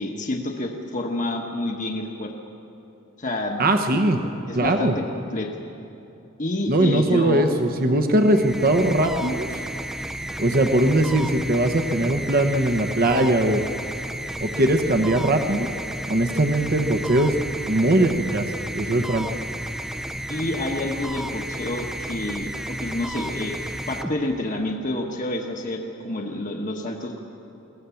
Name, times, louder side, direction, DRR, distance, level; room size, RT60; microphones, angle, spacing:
voice 1, 0.0-2.3 3.2-3.7 4.5-5.0 5.3-5.5 6.4-7.5 20.3-23.6 23.9-27.2, left 1 dB, 40° left, 2 dB, 1.2 m, -28 dB
voice 2, 3.6-4.2 4.5-5.0 6.7-9.5 10.4-13.6 14.4-15.7 16.1-17.3 17.7-18.5 18.7-19.3, right 1 dB, 45° right, 6 dB, 0.9 m, -20 dB
sound 1, 8.2-24.7, right 1 dB, ahead, 0.5 m, -33 dB
22.0 x 17.5 x 7.0 m, 2.9 s
head